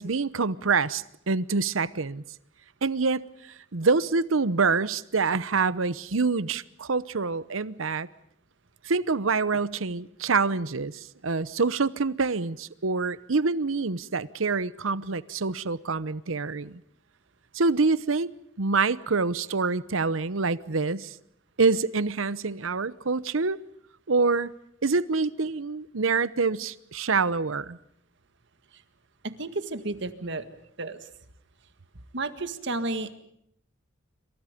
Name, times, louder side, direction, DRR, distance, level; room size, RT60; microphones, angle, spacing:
voice 1, 0.0-2.2 2.8-3.2 3.7-8.1 8.8-16.8 17.5-18.3 18.6-21.1 21.6-23.6 24.1-24.5 24.8-27.8, right 4 dB, 85° right, 0.9 m, -26 dB
voice 2, 29.2-30.5 30.8-31.1 32.1-33.2, right 2 dB, 60° right, 1.8 m, -32 dB
28.0 x 25.5 x 5.2 m
head